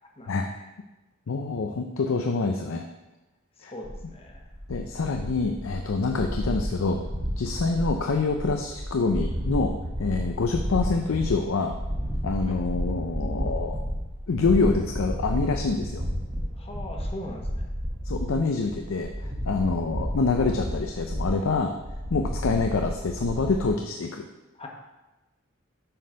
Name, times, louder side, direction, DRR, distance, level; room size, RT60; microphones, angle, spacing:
voice 1, 0.2-0.6 3.6-4.5 12.4-12.6 16.6-17.7 22.2-22.3 24.6-24.7, left 1 dB, 30° left, 1 dB, 1.1 m, -41 dB
voice 2, 1.3-2.9 3.6-3.7 4.7-7.0 7.4-11.7 12.2-13.8 14.3-16.0 18.0-21.7 22.1-24.3, left 4 dB, 75° left, 5 dB, 0.5 m, -26 dB
sound 1, 3.8-23.7, equal, 25° right, 1.1 m, -31 dB
7.7 x 4.3 x 5.1 m, 1.1 s
head